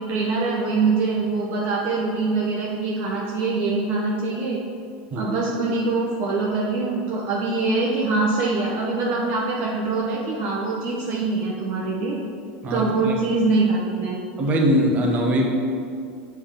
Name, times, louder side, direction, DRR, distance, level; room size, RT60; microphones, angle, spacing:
voice 1, 0.0-4.6 5.2-12.2 12.7-14.2, right 3 dB, 50° right, -3 dB, 0.9 m, -24 dB
voice 2, 12.6-13.2 14.4-15.5, equal, 30° right, -1 dB, 1.2 m, -21 dB
7.0 x 3.5 x 5.7 m, 2.4 s
supercardioid pair, 135°, 5 cm